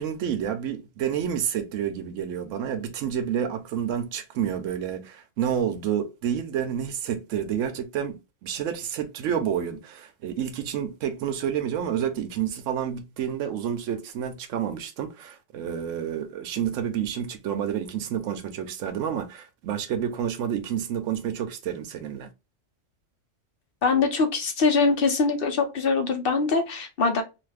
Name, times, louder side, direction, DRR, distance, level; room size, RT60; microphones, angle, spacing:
voice 1, 0.0-22.3, right 9 dB, 85° right, 1.0 m, -29 dB
voice 2, 23.8-27.2, left 4 dB, 55° left, 0.8 m, -23 dB
2.5 x 2.4 x 3.2 m
omnidirectional pair, 1.3 m